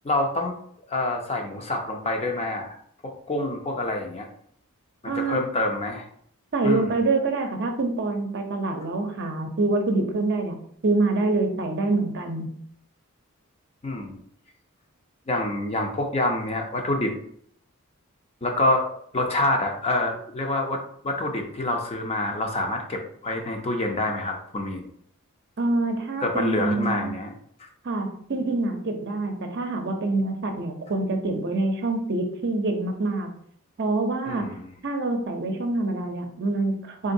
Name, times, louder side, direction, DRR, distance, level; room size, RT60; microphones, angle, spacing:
voice 1, 0.0-0.5 0.9-2.8 3.3-4.3 5.0-6.0 6.6-6.9 13.8-14.2 15.3-17.1 18.4-18.9 19.1-24.9 26.2-27.3 27.6-27.7 34.3-34.6, left 2 dB, 30° left, 3 dB, 0.6 m, -27 dB
voice 2, 5.0-5.4 6.5-12.5 25.6-27.1 27.8-33.3 33.8-34.5 34.8-37.1, right 2 dB, 55° right, 4 dB, 0.6 m, -26 dB
3.8 x 3.7 x 2.6 m, 0.64 s
head